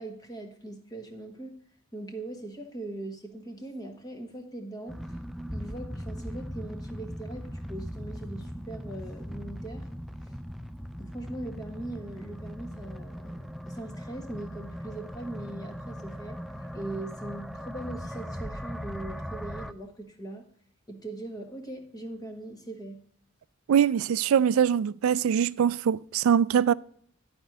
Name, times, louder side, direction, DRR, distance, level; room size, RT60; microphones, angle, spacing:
voice 1, 0.0-1.6 1.9-5.2 5.5-9.9 10.2-10.3 11.0-16.4 16.7-20.5 20.9-23.0, right 2 dB, 20° left, 1.4 m, -40 dB
sound 1, 4.9-19.7, equal, ahead, 0.3 m, -39 dB
voice 2, 23.7-26.7, right 8 dB, 75° right, 0.3 m, -23 dB
11.5 x 4.5 x 6.0 m
head